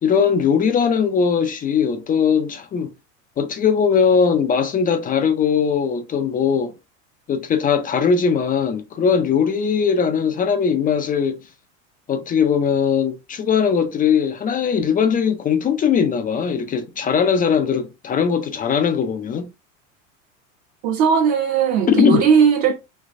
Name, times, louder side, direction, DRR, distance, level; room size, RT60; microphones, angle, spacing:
voice 1, 0.0-2.9 3.4-6.7 7.3-11.4 12.1-19.5 21.9-22.2, left 6 dB, 20° left, 0.4 m, -19 dB
voice 2, 20.8-22.7, right 7 dB, 60° right, 1.1 m, -17 dB
3.2 x 3.1 x 2.5 m
hypercardioid pair, 95°, 39 cm